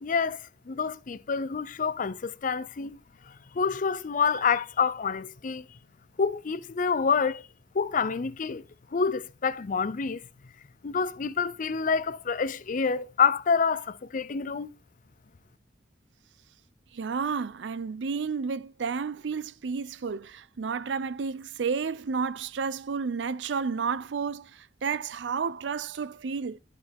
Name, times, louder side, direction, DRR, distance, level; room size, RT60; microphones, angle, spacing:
voice 1, 0.0-3.0 3.5-5.6 6.2-7.4 7.7-8.6 8.9-10.2 10.8-14.7, left 5 dB, 45° left, 0.5 m, -27 dB
voice 2, 16.9-26.6, right 5 dB, 85° right, 0.5 m, -31 dB
12.5 x 5.2 x 3.4 m
head